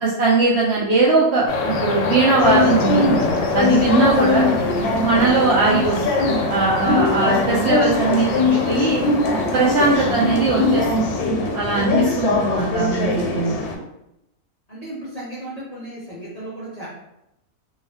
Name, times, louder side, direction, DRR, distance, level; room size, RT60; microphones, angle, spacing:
voice 1, 0.0-4.5 5.0-9.0 9.5-11.2 11.5-13.8, right 3 dB, 65° right, -6 dB, 0.6 m, -20 dB
sound 1, 1.5-11.3, left 3 dB, 70° left, 0.8 m, -27 dB
sound 2, 2.4-13.7, left 3 dB, 85° left, 1.1 m, -21 dB
voice 2, 14.7-16.9, right 1 dB, 45° left, -8 dB, 0.5 m, -35 dB
2.9 x 2.3 x 2.7 m, 0.85 s
omnidirectional pair, 1.6 m